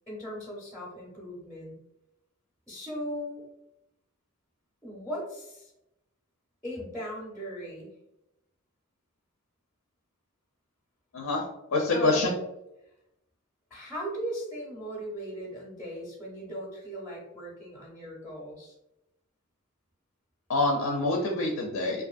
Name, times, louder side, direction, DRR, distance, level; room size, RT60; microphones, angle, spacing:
voice 1, 0.1-1.8 2.7-3.4 4.8-5.7 6.6-7.9 11.9-12.3 13.7-18.7, equal, 5° left, -4 dB, 0.6 m, -38 dB
voice 2, 11.1-12.3 20.5-22.0, left 2 dB, 80° left, 0 dB, 0.5 m, -26 dB
2.5 x 2.5 x 2.4 m, 0.87 s
head